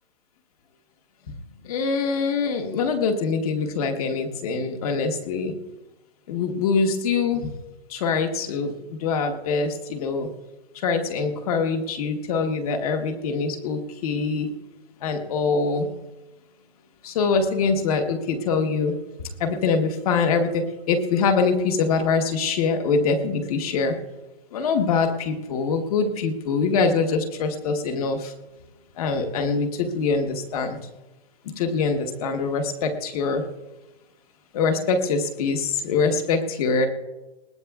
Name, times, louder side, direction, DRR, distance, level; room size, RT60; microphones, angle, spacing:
voice 1, 1.6-5.5 6.3-7.5 7.9-8.7 9.0-10.3 10.7-14.5 15.0-15.9 17.0-24.0 24.5-28.3 29.0-30.8 31.4-33.4 34.5-36.9, left 4 dB, 35° left, 5 dB, 1.2 m, -24 dB
20.5 x 17.5 x 2.4 m, 1.1 s
hypercardioid pair, 165°, 33 cm